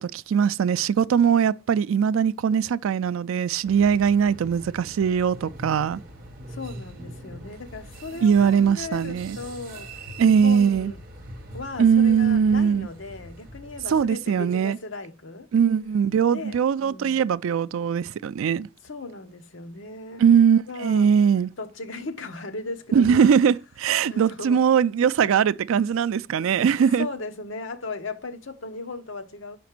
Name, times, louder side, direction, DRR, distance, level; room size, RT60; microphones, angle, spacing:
voice 1, 0.0-6.0 8.2-9.4 10.2-10.9 11.8-12.9 13.9-14.8 15.5-18.7 20.2-21.5 22.9-27.1, right 7 dB, 75° right, 0.3 m, -21 dB
sound 1, 3.6-14.1, right 1 dB, 45° right, 1.2 m, -42 dB
voice 2, 6.5-11.0 11.5-15.5 16.3-17.2 18.8-20.2 20.7-21.1 21.6-23.3 24.0-24.6 26.3-26.4 27.0-29.6, left 3 dB, 65° left, 0.9 m, -37 dB
5.7 x 5.1 x 5.9 m
head